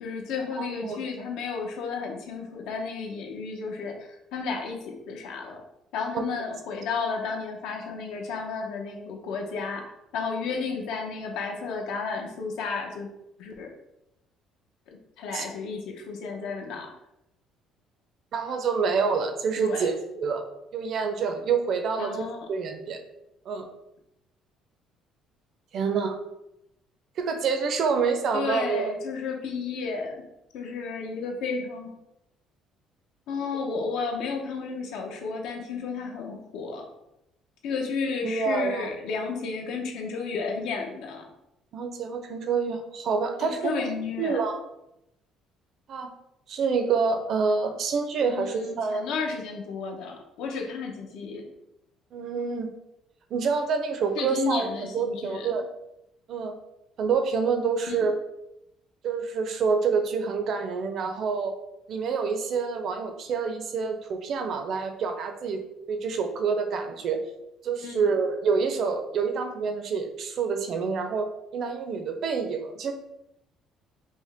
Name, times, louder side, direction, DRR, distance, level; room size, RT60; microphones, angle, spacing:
voice 1, 0.0-5.6 5.9-13.1 13.4-13.7 15.2-16.9 19.6-19.9 22.0-22.4 28.3-30.2 30.5-31.9 33.3-36.9 37.6-41.3 43.4-44.5 48.3-51.5 54.2-55.5 57.9-58.1 67.8-68.1, left 4 dB, 80° left, 2 dB, 0.8 m, -32 dB
voice 2, 0.6-1.0 6.1-6.2 15.3-15.4 18.3-20.4 20.7-22.2 22.5-23.0 23.5-23.7 25.7-26.2 27.2-28.9 38.2-38.9 41.7-43.7 44.2-44.6 45.9-46.1 46.5-49.0 52.1-52.7 53.3-55.6 56.3-56.6 57.0-58.2 59.0-61.5 61.9-65.6 65.9-67.2 67.6-72.9, right 5 dB, 45° right, 6 dB, 0.5 m, -27 dB
5.2 x 2.1 x 3.4 m, 0.86 s
cardioid pair, 160°, 0 cm